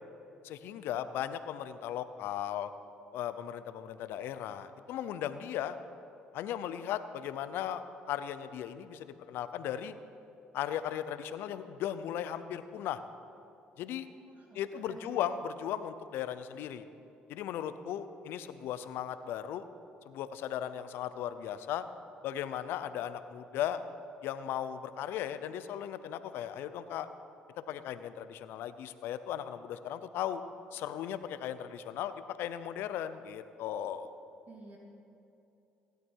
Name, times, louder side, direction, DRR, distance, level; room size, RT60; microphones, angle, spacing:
voice 1, 0.4-2.7 3.1-5.8 6.3-9.9 10.5-13.0 13.8-14.1 14.5-16.8 17.3-19.6 20.0-21.8 22.2-23.8 24.2-27.1 27.7-30.4 30.7-32.1 32.4-34.1, left 10 dB, 75° left, 12 dB, 0.7 m, -37 dB
voice 2, 14.0-15.2 34.5-34.8, right 3 dB, 45° right, 0 dB, 2.4 m, -53 dB
16.5 x 12.0 x 4.7 m, 2.8 s
supercardioid pair, 70°, 4 cm